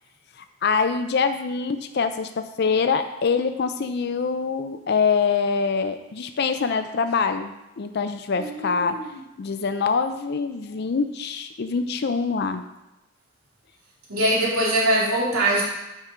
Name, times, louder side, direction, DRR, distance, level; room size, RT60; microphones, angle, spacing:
voice 1, 0.4-9.0 9.4-12.6, left 5 dB, 50° left, 8 dB, 0.4 m, -24 dB
voice 2, 8.4-9.2 14.1-15.6, right 1 dB, 90° right, -4 dB, 2.3 m, -23 dB
7.4 x 5.7 x 5.0 m, 0.93 s
head